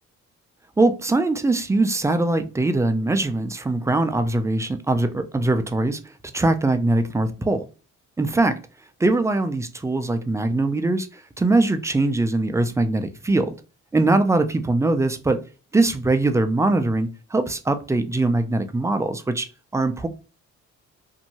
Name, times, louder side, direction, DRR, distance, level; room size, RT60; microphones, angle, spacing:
voice 1, 0.8-6.0 6.3-7.6 8.2-8.6 9.0-13.5 13.9-15.4 15.7-19.5 19.7-20.1, right 2 dB, 10° right, 8 dB, 0.3 m, -22 dB
2.6 x 2.2 x 2.8 m, 0.34 s
cardioid pair, 90°, 30 cm